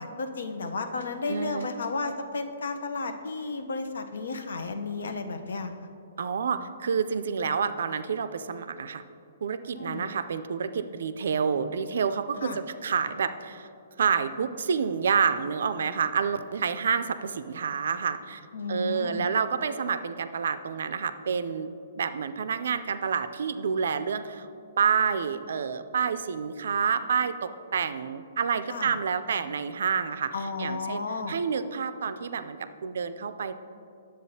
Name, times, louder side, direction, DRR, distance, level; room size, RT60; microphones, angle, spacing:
voice 1, 0.0-5.7 9.7-10.1 12.4-12.6 18.5-19.3 28.7-28.9 30.3-31.3, left 3 dB, 85° left, 7 dB, 0.6 m, -33 dB
voice 2, 1.3-1.7 6.2-9.0 9.4-13.7 14.0-18.4 18.7-21.7 22.0-24.5 24.8-30.3 30.6-33.5, right 6 dB, 60° right, 11 dB, 0.3 m, -28 dB
10.5 x 7.6 x 2.7 m, 2.6 s
hypercardioid pair, 175°, 0 cm